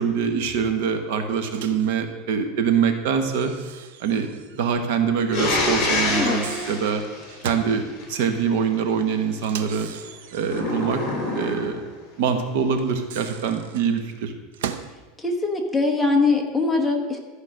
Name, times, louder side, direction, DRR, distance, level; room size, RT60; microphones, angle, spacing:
voice 1, 0.0-3.5 4.0-7.0 7.4-9.9 10.3-11.0 11.3-11.8 12.2-14.3, right 6 dB, 65° right, 7 dB, 1.2 m, -24 dB
Microwave oven, 1.5-1.9 3.3-4.7 4.9-5.0 6.1-7.8 9.4-10.8 12.8-15.0, right 8 dB, 90° right, 0.7 m, -37 dB
sound 1, 5.3-8.0 10.4-11.9, left 2 dB, 40° left, 4.0 m, -26 dB
voice 2, 15.2-17.2, left 3 dB, 5° left, 0 dB, 1.1 m, -22 dB
13.5 x 5.1 x 6.4 m, 1.3 s
supercardioid pair, 155°, 0 cm